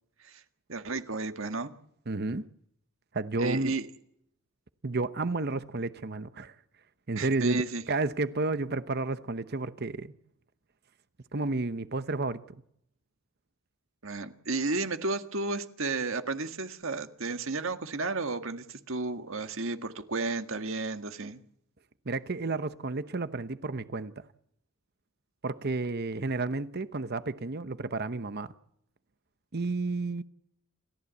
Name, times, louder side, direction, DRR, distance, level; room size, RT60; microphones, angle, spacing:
voice 1, 0.7-1.7 3.4-3.9 7.2-7.8 14.0-21.4, right 3 dB, 60° right, 1.8 m, -33 dB
voice 2, 2.1-2.5 3.1-3.7 4.8-6.5 7.1-10.1 11.3-12.4 22.1-24.1 25.4-28.5 29.5-30.2, right 3 dB, 45° right, 0.9 m, -31 dB
28.5 x 14.5 x 8.3 m
head